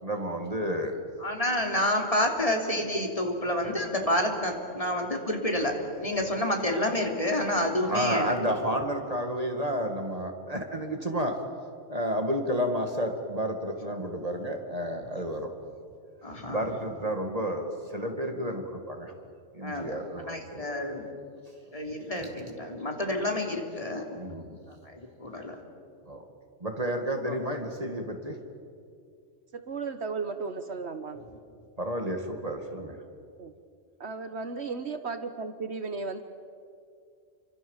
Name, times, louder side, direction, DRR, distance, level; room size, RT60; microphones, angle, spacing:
voice 1, 0.0-1.0 7.9-11.4 11.9-15.5 16.5-19.1 19.5-20.7 22.2-22.3 24.1-24.6 26.0-26.3 26.6-28.4 31.8-33.0, equal, 30° right, 4 dB, 2.4 m, -31 dB
voice 2, 1.2-8.6 16.2-16.6 19.6-20.0 20.3-21.1 21.7-24.2 24.7-25.6 27.3-27.4, left 1 dB, 30° left, 1 dB, 3.4 m, -29 dB
voice 3, 29.5-31.2 33.4-33.5 34.0-36.2, right 4 dB, 65° right, 9 dB, 1.5 m, -35 dB
29.5 x 25.5 x 7.4 m, 2.3 s
omnidirectional pair, 1.2 m